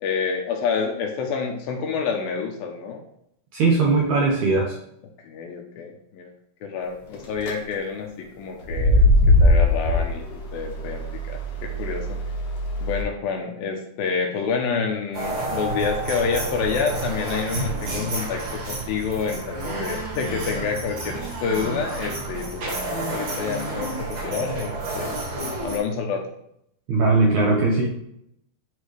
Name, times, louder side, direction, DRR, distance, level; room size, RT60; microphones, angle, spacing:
voice 1, 0.0-3.0 5.2-6.3 6.6-9.1 9.4-12.2 12.8-26.2, left 5 dB, 75° left, 2 dB, 2.4 m, -28 dB
voice 2, 3.5-4.7 26.9-27.9, right 3 dB, 70° right, -2 dB, 1.8 m, -19 dB
sound 1, 7.1-7.5 8.6-13.0, left 1 dB, 60° left, 1.6 m, -20 dB
sound 2, 15.1-25.8, right 2 dB, 45° right, 2.8 m, -30 dB
10.5 x 4.1 x 3.3 m, 0.72 s
omnidirectional pair, 4.6 m